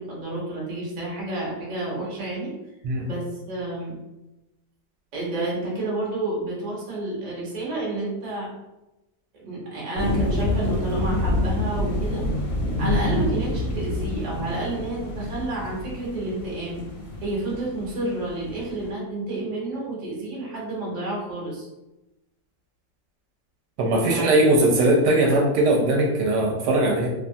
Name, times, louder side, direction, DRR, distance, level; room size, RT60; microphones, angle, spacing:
voice 1, 0.0-2.5 3.1-4.0 5.1-8.5 9.4-12.3 12.8-16.8 17.2-21.7 24.1-24.4, right 2 dB, 45° right, -5 dB, 0.5 m, -30 dB
sound 1, 10.0-18.8, left 1 dB, 65° left, 0.8 m, -27 dB
voice 2, 23.8-27.1, right 1 dB, 75° right, -1 dB, 1.1 m, -20 dB
2.8 x 2.3 x 2.6 m, 0.99 s
omnidirectional pair, 2.0 m